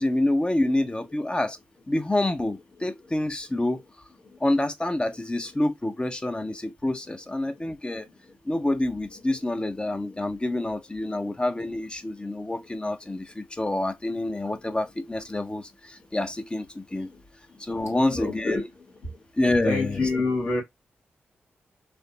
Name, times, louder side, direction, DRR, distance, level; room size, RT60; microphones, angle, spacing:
voice 1, 0.0-1.6 1.9-3.8 4.4-8.1 8.5-17.1 17.6-18.7 19.4-20.0, left 1 dB, 20° left, 0.6 m, -27 dB
voice 2, 18.1-18.6 19.6-20.6, left 3 dB, 75° left, 1.5 m, -26 dB
3.2 x 2.0 x 2.7 m
supercardioid pair, 40°, 5 cm